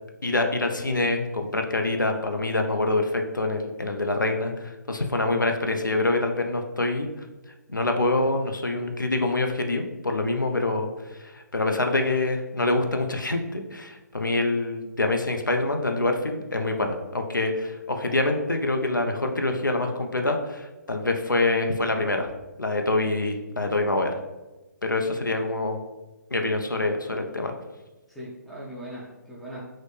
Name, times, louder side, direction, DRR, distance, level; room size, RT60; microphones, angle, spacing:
voice 1, 0.2-7.3 7.7-22.3 22.6-24.2 24.8-25.8 26.3-27.5, left 2 dB, 85° left, 4 dB, 0.4 m, -26 dB
voice 2, 28.1-29.7, right 1 dB, ahead, -7 dB, 0.4 m, -40 dB
3.7 x 2.1 x 3.2 m, 1.1 s
figure-of-eight pair, 135°, 10 cm